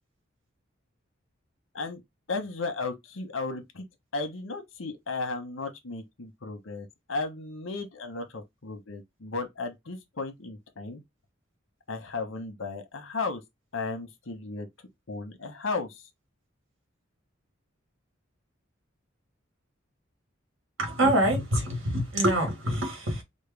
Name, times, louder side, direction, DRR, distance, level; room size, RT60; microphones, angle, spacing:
voice 1, 2.3-3.8 4.1-11.0 11.9-13.4 13.7-14.7 15.1-16.0, left 3 dB, 75° left, 1.0 m, -35 dB
voice 2, 20.8-23.2, right 1 dB, 80° right, 1.6 m, -25 dB
4.3 x 2.2 x 3.4 m
head